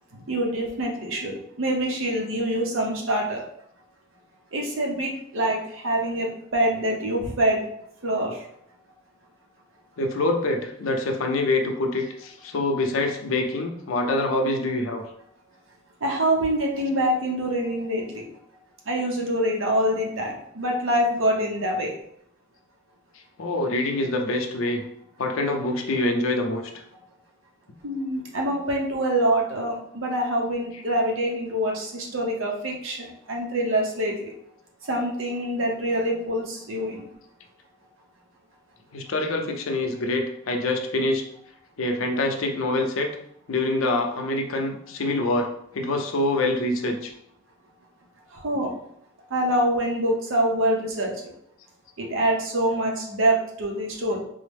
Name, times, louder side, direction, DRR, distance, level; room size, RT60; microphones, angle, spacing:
voice 1, 0.1-3.4 4.5-7.6 8.0-8.4 16.0-18.3 18.9-21.9 27.8-34.3 34.8-37.0 48.3-48.7 49.3-51.1 52.0-54.2, right 1 dB, 80° right, 0 dB, 0.8 m, -25 dB
voice 2, 10.0-15.0 23.4-24.8 25.2-26.7 38.9-41.2 41.8-43.1 43.5-45.5 45.7-47.1, left 2 dB, 85° left, 3 dB, 0.6 m, -25 dB
3.9 x 2.0 x 3.3 m, 0.71 s
head